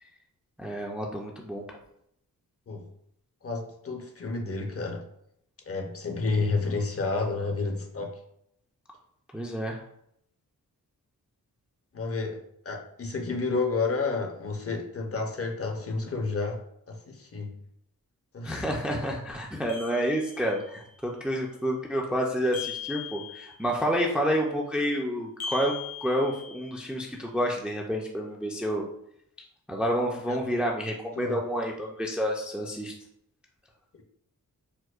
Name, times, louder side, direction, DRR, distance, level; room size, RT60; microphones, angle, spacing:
voice 1, 0.6-1.6 9.3-9.8 18.4-28.8 29.7-32.9, equal, 5° right, 0 dB, 0.4 m, -29 dB
voice 2, 3.4-5.0 5.7-8.2 11.9-17.6 18.3-18.7 30.3-30.4 31.2-31.4, left 3 dB, 40° left, 2 dB, 0.6 m, -30 dB
sound 1, 19.7-20.7 22.5-23.8 25.4-26.9, left 7 dB, 90° left, 0.6 m, -39 dB
4.4 x 2.1 x 2.4 m, 0.74 s
wide cardioid pair, 95°, 35 cm